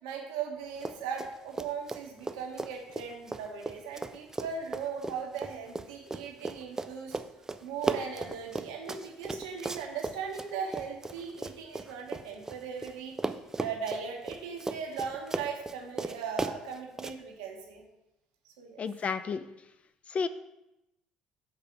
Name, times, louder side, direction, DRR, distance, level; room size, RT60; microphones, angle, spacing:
voice 1, 0.0-7.2 7.6-17.8 18.4-18.8, right 6 dB, 80° right, 1 dB, 1.3 m, -38 dB
Run, 0.8-1.3 1.6-12.9 13.2-17.1, right 2 dB, 15° right, 0.5 m, -36 dB
voice 2, 18.8-19.4 20.1-20.3, left 5 dB, 45° left, 12 dB, 0.5 m, -31 dB
5.5 x 4.0 x 6.0 m, 0.91 s
hypercardioid pair, 55°, 3 cm